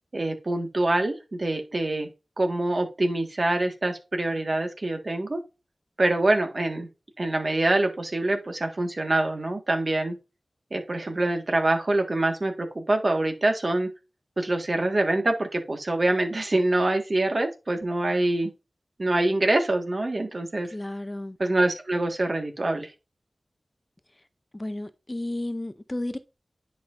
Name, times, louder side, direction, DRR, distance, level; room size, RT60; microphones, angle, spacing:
voice 1, 0.1-2.1 2.4-5.4 6.0-6.9 7.2-10.2 10.7-13.9 14.4-18.5 19.0-20.7 21.4-22.9, right 2 dB, 50° right, 1.6 m, -25 dB
voice 2, 20.7-21.4 24.5-26.2, left 1 dB, 25° left, 0.5 m, -32 dB
10.5 x 5.0 x 2.6 m
wide cardioid pair, 65°, 0 cm